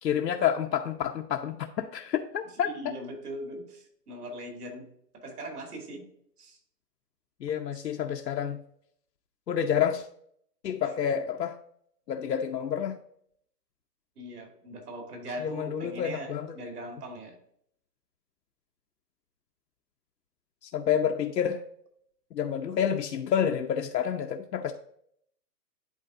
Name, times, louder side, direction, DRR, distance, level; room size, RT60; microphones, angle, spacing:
voice 1, 0.0-2.7 7.4-8.6 9.5-10.1 10.6-11.6 12.1-13.0 15.4-16.6 20.6-21.6 22.3-24.7, left 8 dB, 80° left, 2 dB, 0.9 m, -29 dB
voice 2, 2.7-4.9 5.1-6.1 6.4-6.6 14.2-17.4, equal, 65° right, 2 dB, 2.6 m, -40 dB
11.0 x 4.0 x 2.5 m, 0.67 s
hypercardioid pair, 165°, 48 cm